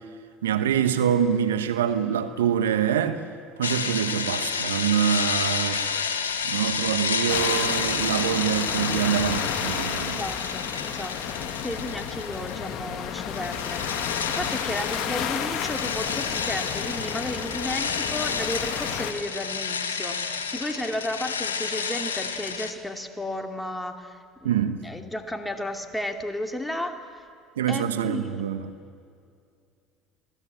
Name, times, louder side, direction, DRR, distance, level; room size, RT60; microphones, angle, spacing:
voice 1, 0.4-3.2 3.6-5.8 6.4-10.2 24.4-24.8 27.6-28.6, right 9 dB, 85° right, 1.1 m, -25 dB
sound 1, 3.6-12.7 13.0-22.7, left 6 dB, 90° left, 1.3 m, -30 dB
sound 2, 7.3-19.1, left 9 dB, 60° left, 1.6 m, -32 dB
voice 2, 10.0-27.3 27.7-28.4, left 1 dB, 5° left, 2.6 m, -33 dB
26.5 x 18.0 x 8.7 m
hypercardioid pair, 65°, 0 cm